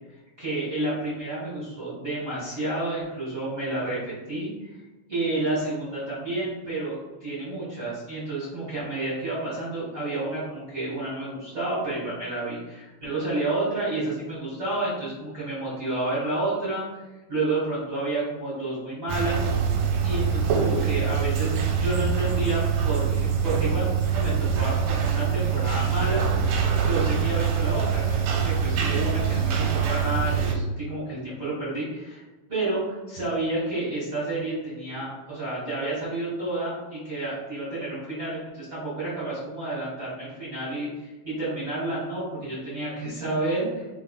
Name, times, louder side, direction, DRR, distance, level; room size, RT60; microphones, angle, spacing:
voice 1, 0.4-4.8 5.1-17.0 17.3-19.4 20.0-26.2 26.8-32.2 32.5-43.9, right 2 dB, 45° right, -9 dB, 1.1 m, -30 dB
sound 1, 19.1-30.5, right 6 dB, 80° right, 1.9 m, -24 dB
4.8 x 3.5 x 2.3 m, 1.1 s
omnidirectional pair, 3.7 m